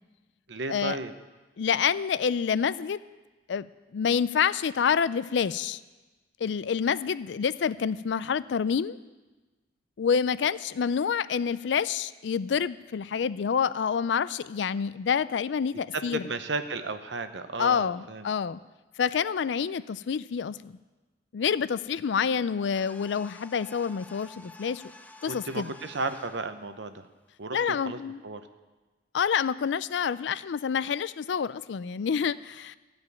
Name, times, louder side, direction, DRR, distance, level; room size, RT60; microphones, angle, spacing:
voice 1, 0.5-1.1 15.9-18.3 25.3-27.1 27.4-28.4, right 3 dB, 75° right, 9 dB, 0.8 m, -34 dB
voice 2, 1.6-3.0 3.5-3.7 3.9-5.8 6.4-9.0 10.0-16.2 17.6-18.6 19.0-20.8 21.3-24.8 25.2-25.7 27.5-28.2 29.1-32.8, left 7 dB, 75° left, 16 dB, 0.4 m, -27 dB
sound 1, 22.7-26.5, left 2 dB, 10° left, 0.5 m, -50 dB
14.5 x 5.2 x 9.5 m, 1.2 s
head